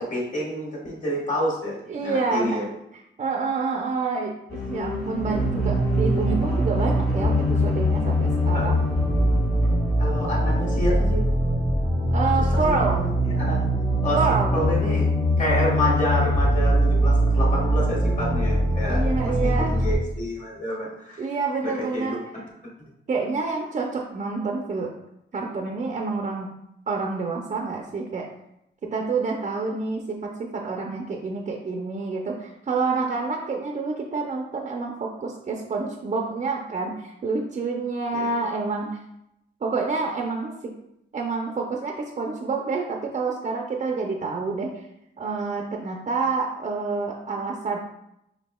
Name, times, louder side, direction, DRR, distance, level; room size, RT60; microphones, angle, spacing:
voice 1, 0.0-2.7 8.5-8.7 10.0-11.2 12.4-13.7 14.0-14.2 14.5-15.1 15.4-21.3 21.6-22.2 38.1-38.3, equal, 40° left, -4 dB, 1.5 m, -29 dB
voice 2, 1.9-2.6 3.2-8.8 12.1-13.0 14.1-14.5 18.9-19.7 21.2-22.2 23.1-24.9 25.3-26.5 26.9-28.3 28.9-38.9 39.6-40.7 41.1-44.7 45.2-47.8, right 4 dB, 40° right, 1 dB, 0.5 m, -28 dB
sound 1, 4.5-10.8, left 3 dB, 65° left, 1.5 m, -34 dB
sound 2, 5.2-20.0, equal, 15° left, 0.8 m, -22 dB
6.0 x 2.7 x 2.2 m, 0.82 s
cardioid pair, 105°, 19 cm